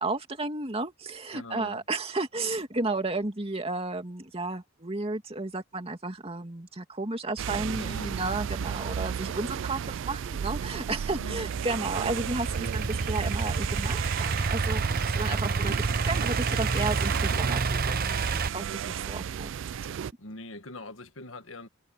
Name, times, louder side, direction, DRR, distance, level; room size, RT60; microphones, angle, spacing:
voice 1, 0.0-19.5, right 2 dB, 30° right, 2.4 m, -33 dB
voice 2, 1.3-1.8 7.8-9.0 11.2-11.5 20.2-21.7, left 1 dB, 80° left, 1.8 m, -43 dB
sound 1, 7.4-20.1, right 8 dB, 65° right, 0.3 m, -34 dB
Idling / Accelerating revving vroom, 11.4-18.5, right 4 dB, 45° right, 0.8 m, -29 dB
head